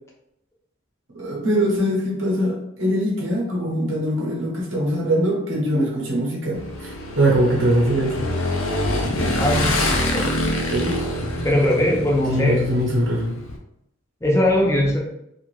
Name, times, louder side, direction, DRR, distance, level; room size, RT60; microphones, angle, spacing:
voice 1, 1.1-8.3 10.7-10.9 12.3-13.3, equal, 70° right, -2 dB, 0.8 m, -22 dB
Motorcycle / Engine, 6.6-13.6, left 1 dB, 85° left, 0.5 m, -25 dB
voice 2, 9.4-10.3 11.4-12.6 14.2-15.0, left 1 dB, 15° left, -2 dB, 0.5 m, -20 dB
2.6 x 2.5 x 3.1 m, 0.80 s
head